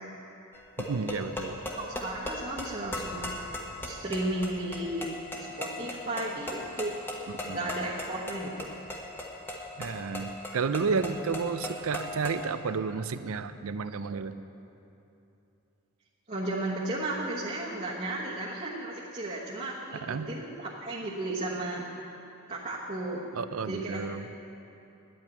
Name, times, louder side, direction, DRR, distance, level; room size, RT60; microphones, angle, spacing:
sound 1, 0.5-12.5, left 1 dB, 10° left, 1.1 m, -38 dB
voice 1, 0.8-1.6 7.4-7.7 9.8-14.4 20.1-20.3 23.4-24.3, right 5 dB, 75° right, 12 dB, 0.5 m, -31 dB
voice 2, 1.7-3.3 3.8-5.1 5.4-6.9 7.5-8.7 16.3-21.9 22.5-23.2 23.7-24.0, right 1 dB, 35° right, -6 dB, 1.2 m, -34 dB
10.5 x 8.7 x 9.1 m, 2.8 s
head